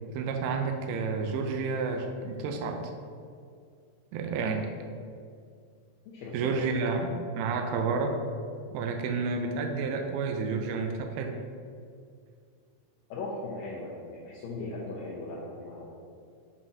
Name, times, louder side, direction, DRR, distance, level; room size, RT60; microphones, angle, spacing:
voice 1, 0.1-2.8 4.1-4.7 6.3-8.2 8.7-11.4, right 4 dB, 85° right, 4 dB, 2.6 m, -30 dB
voice 2, 6.1-6.6 13.1-15.9, left 2 dB, 75° left, -5 dB, 2.2 m, -38 dB
7.2 x 5.4 x 2.7 m, 2.3 s
omnidirectional pair, 4.5 m